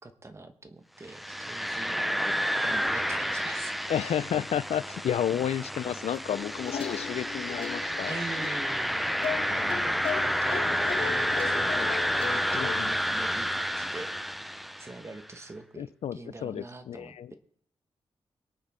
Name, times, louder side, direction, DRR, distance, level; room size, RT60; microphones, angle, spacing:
voice 1, 0.0-4.1 8.1-14.1 14.8-17.3, right 2 dB, 25° right, 8 dB, 1.3 m, -44 dB
sound 1, 1.1-15.0, equal, ahead, 0.6 m, -30 dB
voice 2, 3.9-8.2 9.3-9.9 12.5-13.0 15.8-17.3, left 9 dB, 75° left, 17 dB, 0.4 m, -32 dB
sound 2, 6.4-12.8, left 7 dB, 60° left, 0.9 m, -37 dB
23.0 x 8.9 x 3.7 m, 0.69 s
wide cardioid pair, 125°, 11 cm